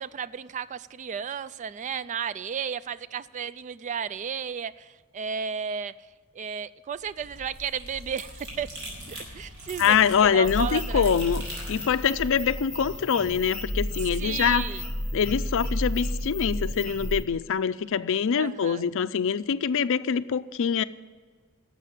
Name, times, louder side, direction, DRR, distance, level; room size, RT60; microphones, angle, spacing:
voice 1, 0.0-5.9 6.3-8.7 9.1-11.1 14.2-14.8 18.3-18.8, right 7 dB, 35° right, 17 dB, 0.3 m, -33 dB
sound 1, 6.9-13.0, equal, 65° right, 4.6 m, -42 dB
voice 2, 9.8-14.7 15.1-20.8, left 7 dB, 60° left, 15 dB, 0.4 m, -24 dB
sound 2, 10.4-17.2, equal, 5° left, 2.4 m, -32 dB
11.5 x 7.5 x 9.0 m, 1.5 s
head